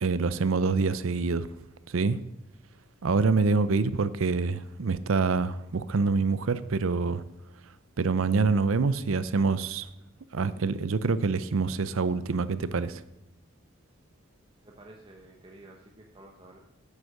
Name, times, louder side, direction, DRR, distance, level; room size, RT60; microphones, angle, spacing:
voice 1, 0.0-1.5 1.9-2.2 3.0-7.2 8.0-9.9 10.3-13.0, right 4 dB, 80° right, 0.5 m, -26 dB
voice 2, 14.6-16.6, right 1 dB, 25° right, 0.9 m, -51 dB
9.6 x 8.3 x 6.5 m
head